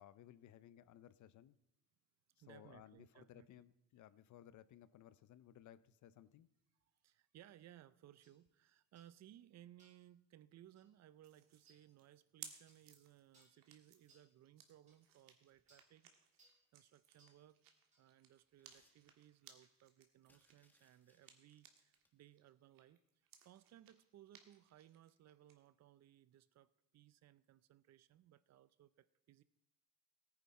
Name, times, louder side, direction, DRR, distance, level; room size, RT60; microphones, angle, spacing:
voice 1, 0.0-1.6 2.5-6.5, left 11 dB, 60° left, 16 dB, 0.7 m, -60 dB
voice 2, 2.4-3.6 7.0-16.4 16.7-17.6 18.0-23.0 23.4-29.4, right 12 dB, 50° right, 17 dB, 0.5 m, -63 dB
sound 1, 8.2-8.4 9.0-9.2 9.8-10.1 10.8-10.9 11.7-11.8 12.7-12.9 13.3-13.6 14.1-14.3 14.9-15.0 15.7-15.9 16.4-16.6 17.2-17.4 17.9-18.1, right 2 dB, 20° right, 2.9 m, -71 dB
sound 2, 11.2-22.0 22.4-25.6, right 8 dB, 75° right, 1.7 m, -62 dB
sound 3, 15.0-15.8 17.3-17.5 17.9-19.5 20.2-22.4 23.4-23.5 23.9-24.0, left 1 dB, 5° left, 1.3 m, -79 dB
17.5 x 9.7 x 4.2 m, 0.85 s
cardioid pair, 155°, 33 cm